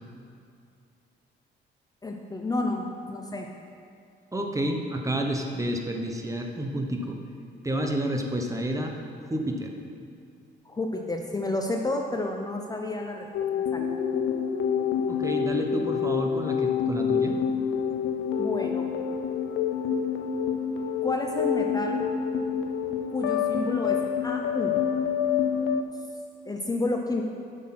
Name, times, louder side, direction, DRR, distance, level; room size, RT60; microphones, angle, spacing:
voice 1, 2.0-3.5 10.6-13.3 13.7-13.8 18.4-18.9 21.0-22.0 23.1-24.0 24.2-24.7 26.5-27.2, left 2 dB, 20° left, 2 dB, 0.7 m, -30 dB
voice 2, 4.3-7.2 7.6-9.0 9.2-9.7 15.1-17.4, right 1 dB, 15° right, 2 dB, 1.0 m, -30 dB
sound 1, 13.3-25.8, left 7 dB, 85° left, 0.5 m, -27 dB
8.0 x 6.5 x 6.0 m, 2.4 s
cardioid pair, 90°, 20 cm